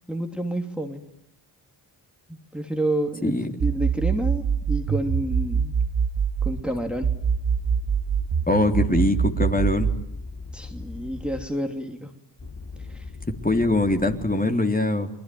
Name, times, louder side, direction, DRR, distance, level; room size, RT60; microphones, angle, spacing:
voice 1, 0.1-1.0 2.3-5.8 6.4-7.1 10.5-12.1 12.8-13.1, right 1 dB, ahead, 4 dB, 2.9 m, -29 dB
sound 1, 3.6-6.6 7.0-10.0, right 7 dB, 55° right, 1.6 m, -24 dB
sound 2, 6.4-8.5 9.4-11.5 12.4-14.3, left 4 dB, 40° left, 4.2 m, -40 dB
voice 2, 8.5-9.9 13.4-15.1, left 2 dB, 15° left, 4 dB, 3.5 m, -22 dB
28.5 x 20.5 x 9.4 m, 0.80 s
supercardioid pair, 40°, 50 cm